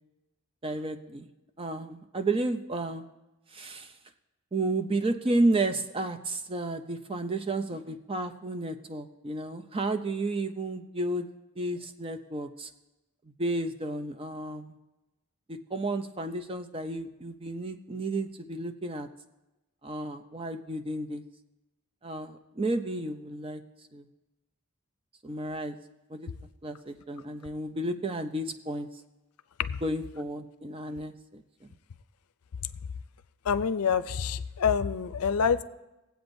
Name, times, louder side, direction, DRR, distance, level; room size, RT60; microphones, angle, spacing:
voice 1, 0.6-1.3 1.6-3.1 3.5-3.9 4.5-11.3 11.6-12.7 13.4-14.7 15.5-19.1 19.8-21.2 22.0-23.6 23.9-24.1 25.2-25.7 26.1-26.3 26.6-28.9 29.8-31.7, right 2 dB, 25° right, 8 dB, 0.5 m, -32 dB
voice 2, 33.5-35.6, left 6 dB, 85° left, 12 dB, 0.5 m, -26 dB
20.0 x 8.0 x 2.6 m, 1.0 s
head